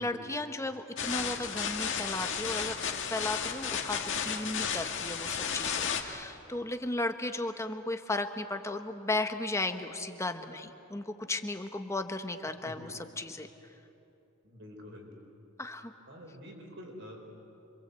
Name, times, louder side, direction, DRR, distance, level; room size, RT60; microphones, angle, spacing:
voice 1, 0.0-2.8 3.1-13.5 15.6-15.9, left 2 dB, 15° left, 7 dB, 1.2 m, -35 dB
sound 1, 1.0-6.0, left 7 dB, 60° left, 1.9 m, -33 dB
voice 2, 12.6-12.9 14.4-15.1 16.1-17.2, left 1 dB, 60° right, 2 dB, 4.8 m, -47 dB
27.0 x 26.0 x 8.2 m, 2.8 s
head